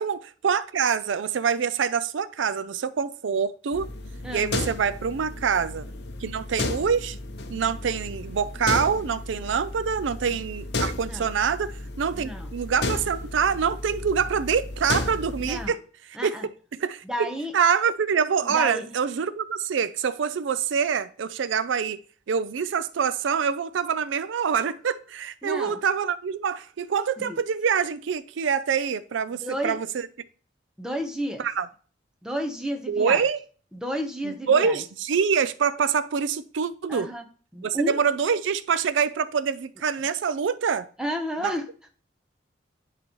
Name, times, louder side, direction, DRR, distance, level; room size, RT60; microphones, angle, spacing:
voice 1, 0.0-3.9 4.3-5.9 6.2-7.2 7.5-15.8 16.2-16.4 16.8-17.0 17.5-22.0 22.3-29.9 31.4-31.7 32.9-33.4 34.2-37.1 37.6-40.9 41.4-41.5, right 6 dB, 80° right, 0.4 m, -25 dB
sound 1, 3.7-15.7, left 2 dB, 60° left, 0.7 m, -33 dB
voice 2, 4.2-4.7 10.9-11.3 12.2-12.5 15.4-15.8 16.1-16.4 17.0-17.5 18.4-18.9 25.4-25.8 27.2-27.4 29.4-29.8 30.8-31.4 32.2-33.2 33.7-34.8 36.9-37.2 37.5-38.0 41.0-41.6, equal, 5° right, 0.8 m, -31 dB
10.5 x 3.9 x 3.1 m
head